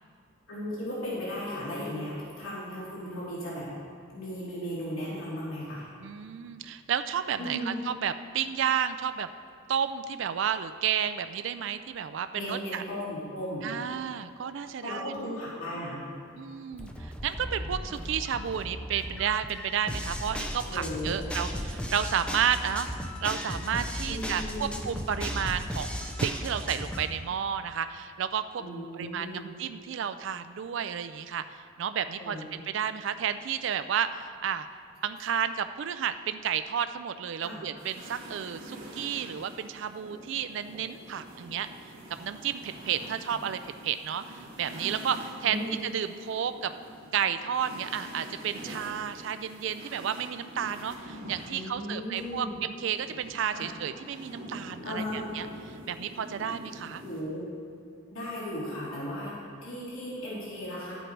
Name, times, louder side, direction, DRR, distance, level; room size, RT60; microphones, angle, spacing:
voice 1, 0.5-3.7 4.1-5.8 7.4-7.8 12.3-13.6 14.8-16.0 20.7-21.2 24.1-24.8 28.6-29.5 32.2-32.5 37.4-37.6 45.4-45.7 51.5-52.5 53.5-53.7 54.8-55.2 57.0-57.4 58.1-59.3 59.6-61.0, equal, 85° left, -8 dB, 2.7 m, -36 dB
voice 2, 6.0-9.3 9.7-12.8 13.6-15.1 16.4-22.9 23.2-28.6 28.9-31.4 31.8-34.7 35.0-41.7 42.2-44.2 44.6-46.7 47.1-57.0, right 8 dB, 60° right, 10 dB, 0.3 m, -32 dB
sound 1, 16.7-27.1, equal, 5° left, 0.6 m, -36 dB
sound 2, 37.8-52.3 52.9-57.2, right 1 dB, 45° right, 2.0 m, -45 dB
11.0 x 7.9 x 4.6 m, 2.5 s
head